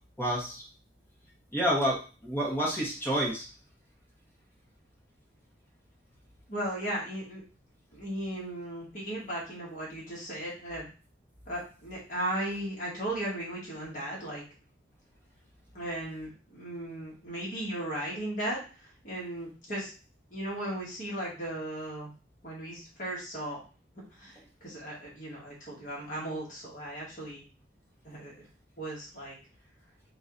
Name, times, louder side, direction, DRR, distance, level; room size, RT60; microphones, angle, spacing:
voice 1, 0.2-0.6 1.5-3.5, equal, 10° left, -3 dB, 1.3 m, -29 dB
voice 2, 6.5-7.4 7.9-10.9 11.5-14.4 15.7-19.9 20.3-22.1 22.4-23.6 24.1-27.4 28.0-28.3 28.8-29.4, right 1 dB, 40° left, -5 dB, 1.6 m, -36 dB
3.9 x 2.9 x 3.9 m, 0.36 s
head